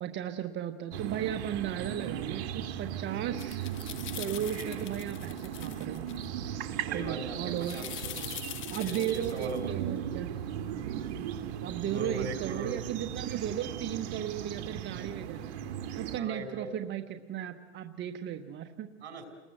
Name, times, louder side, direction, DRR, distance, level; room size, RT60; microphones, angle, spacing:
voice 1, 0.0-3.6 4.2-6.1 6.9-7.8 8.7-10.3 11.6-15.5 16.0-18.9, right 10 dB, 35° right, 8 dB, 1.3 m, -35 dB
sound 1, 0.9-16.2, right 10 dB, 60° right, 1.8 m, -37 dB
sound 2, 3.4-6.3 7.6-9.6, left 12 dB, 35° left, 1.5 m, -43 dB
voice 2, 6.9-8.3 8.7-9.8 11.9-12.8 16.1-16.7 19.0-19.2, right 3 dB, 80° right, 7 dB, 5.4 m, -39 dB
30.0 x 20.5 x 7.9 m, 1.3 s
hypercardioid pair, 115°, 33 cm